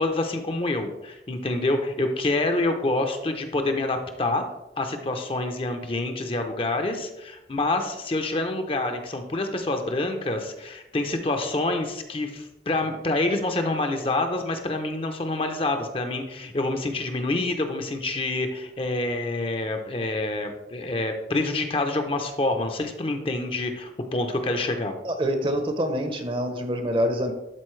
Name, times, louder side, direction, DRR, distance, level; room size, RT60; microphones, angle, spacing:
voice 1, 0.0-4.5 4.8-24.9, left 2 dB, 30° left, 6 dB, 0.6 m, -27 dB
voice 2, 25.0-27.3, equal, 30° right, 6 dB, 0.7 m, -26 dB
12.0 x 4.1 x 3.2 m, 0.95 s
head